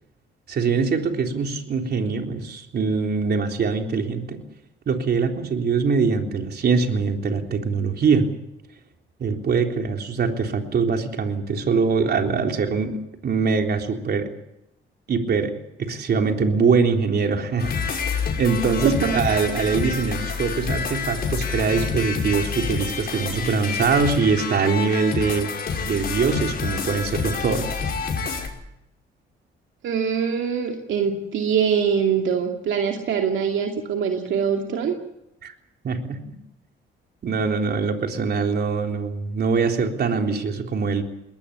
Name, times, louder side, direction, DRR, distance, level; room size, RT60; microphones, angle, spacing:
voice 1, 0.5-4.4 4.9-8.3 9.2-14.3 15.1-15.5 15.8-25.5 25.9-27.7 35.4-35.5 35.8-36.3 37.2-41.0, right 5 dB, 55° right, 4 dB, 3.7 m, -23 dB
sound 1, 17.6-28.5, left 5 dB, 50° left, 5.9 m, -28 dB
voice 2, 18.8-19.4 29.8-35.0, right 7 dB, 75° right, 3 dB, 2.5 m, -23 dB
21.5 x 19.0 x 8.5 m, 0.85 s
cardioid pair, 90°, 20 cm